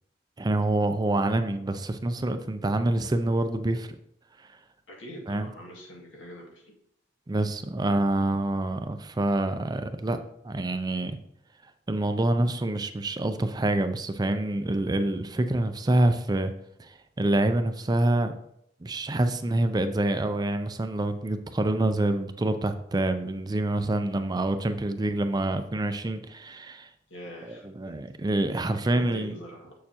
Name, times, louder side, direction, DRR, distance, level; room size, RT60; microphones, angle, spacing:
voice 1, 0.4-3.9 5.3-5.5 7.3-10.2 10.4-11.2 11.9-16.5 16.8-18.3 18.8-26.9 27.5-29.4, right 1 dB, 20° right, 9 dB, 0.4 m, -26 dB
voice 2, 4.9-6.7 24.9-25.0 27.1-28.1 28.8-29.8, equal, 85° left, -1 dB, 1.9 m, -43 dB
7.3 x 6.6 x 2.8 m, 0.73 s
head